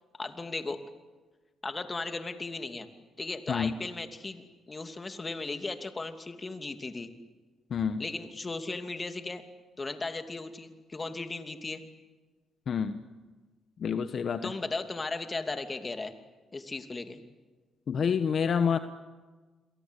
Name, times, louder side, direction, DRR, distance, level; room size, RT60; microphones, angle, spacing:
voice 1, 0.2-0.8 1.6-2.9 3.2-7.1 8.0-9.4 9.8-11.8 14.4-16.1 16.5-17.2, left 3 dB, 25° left, 7 dB, 2.7 m, -36 dB
voice 2, 7.7-8.0 12.7-13.0 13.8-14.5 17.9-18.8, left 7 dB, 55° left, 10 dB, 1.2 m, -27 dB
29.5 x 23.0 x 8.3 m, 1.3 s
cardioid pair, 90°, 0 cm